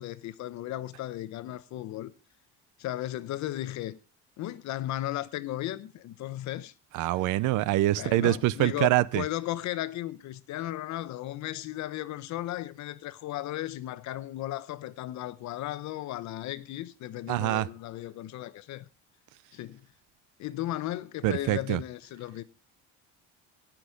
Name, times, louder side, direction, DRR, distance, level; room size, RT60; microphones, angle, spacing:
voice 1, 0.0-2.1 2.8-4.0 4.4-6.7 7.1-7.3 8.0-18.8 19.5-19.8 20.4-22.4, left 14 dB, 60° left, 0.9 m, -35 dB
voice 2, 6.9-9.2 17.3-17.7 21.2-21.8, right 16 dB, 65° right, 0.6 m, -25 dB
18.0 x 6.2 x 5.0 m
cardioid pair, 145°, 33 cm